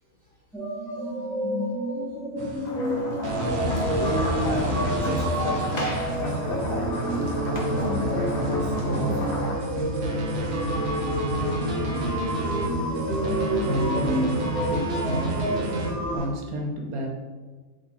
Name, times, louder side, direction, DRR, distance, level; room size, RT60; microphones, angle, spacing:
sound 1, 0.5-16.2, right 1 dB, ahead, 1.1 m, -30 dB
sound 2, 2.4-2.7 3.2-16.3, right 1 dB, 50° right, 1.0 m, -29 dB
sound 3, 2.6-9.5, equal, 30° left, 1.0 m, -35 dB
voice 1, 3.8-7.0 7.6-9.2 12.4-12.5, left 2 dB, 65° left, 0 dB, 0.5 m, -34 dB
voice 2, 13.6-15.4 16.1-17.1, right 1 dB, 70° right, 1 dB, 1.4 m, -30 dB
6.3 x 3.8 x 4.2 m, 1.4 s
omnidirectional pair, 1.6 m